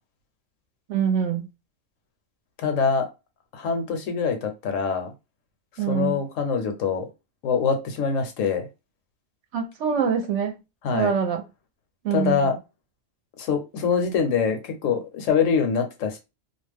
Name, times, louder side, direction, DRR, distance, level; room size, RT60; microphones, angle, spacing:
voice 1, 0.9-1.5 5.8-6.2 9.5-10.6 10.9-11.4 12.0-12.5, right 7 dB, 70° right, 0.9 m, -24 dB
voice 2, 2.6-3.1 3.5-5.1 5.9-7.0 7.4-8.7 10.8-11.1 12.1-12.6 13.4-16.2, left 6 dB, 75° left, 1.0 m, -24 dB
2.4 x 2.2 x 3.3 m
omnidirectional pair, 1.3 m